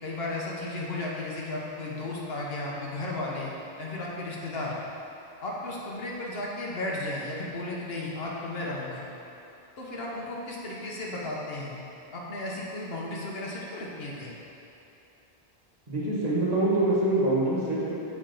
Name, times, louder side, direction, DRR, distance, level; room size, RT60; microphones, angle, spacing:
voice 1, 0.0-3.5 3.8-4.8 5.4-9.0 9.8-11.7 12.1-14.3, left 2 dB, 65° left, -4 dB, 1.1 m, -34 dB
voice 2, 15.9-17.9, right 2 dB, 40° right, -8 dB, 1.3 m, -25 dB
7.0 x 4.3 x 3.8 m, 2.8 s
omnidirectional pair, 1.1 m